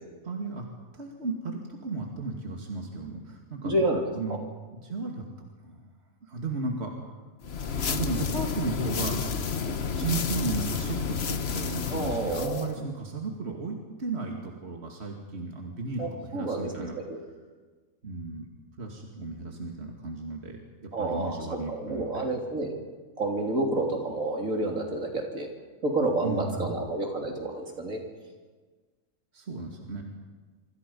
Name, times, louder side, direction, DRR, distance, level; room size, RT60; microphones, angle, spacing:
voice 1, 0.2-0.7 0.9-3.8 4.1-4.4 4.7-5.3 5.6-5.9 6.3-7.1 7.9-9.2 9.5-17.0 18.0-18.4 18.8-22.3 26.2-26.9 29.3-30.0, right 3 dB, 50° right, 1 dB, 2.7 m, -35 dB
voice 2, 3.6-4.4 11.9-12.7 16.0-17.2 20.9-21.4 21.7-22.7 23.2-25.5 25.8-28.0, right 2 dB, 70° right, 1 dB, 3.8 m, -29 dB
sound 1, 7.4-12.7, left 6 dB, 50° left, 1.2 m, -30 dB
26.5 x 25.5 x 5.6 m, 1.4 s
omnidirectional pair, 1.5 m